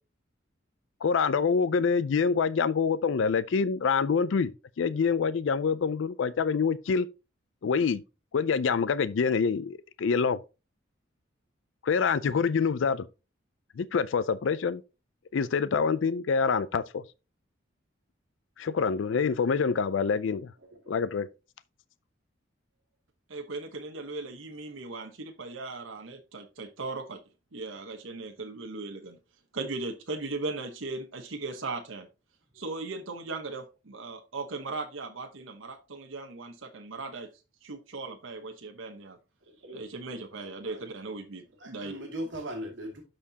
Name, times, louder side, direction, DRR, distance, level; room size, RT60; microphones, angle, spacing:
voice 1, 1.0-4.5 4.8-7.1 7.6-8.0 8.3-10.4 11.8-13.1 13.8-14.8 15.3-17.0 18.6-20.5 20.9-21.3, left 5 dB, 70° left, 0.4 m, -26 dB
voice 2, 20.6-21.0 39.4-39.9 40.4-41.2 41.5-43.0, right 1 dB, 70° right, 2.4 m, -40 dB
voice 3, 23.3-27.2 27.5-29.2 29.5-32.1 32.5-37.3 37.6-39.2 39.7-42.0, right 3 dB, 85° right, 1.0 m, -38 dB
12.5 x 4.4 x 2.8 m
head